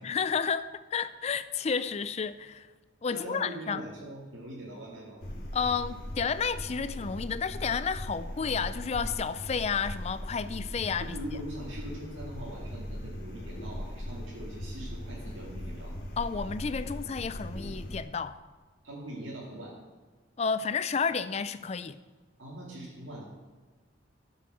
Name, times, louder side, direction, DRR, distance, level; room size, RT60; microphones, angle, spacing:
voice 1, 0.0-2.7 3.0-3.8 5.5-11.2 16.2-18.4 20.4-22.0, left 6 dB, 35° left, 0.3 m, -31 dB
voice 2, 3.1-5.2 11.0-15.9 18.8-19.8 22.4-23.2, right 1 dB, 85° right, 2.2 m, -42 dB
sound 1, 5.2-18.0, equal, 55° left, 1.7 m, -39 dB
12.0 x 5.6 x 6.2 m
head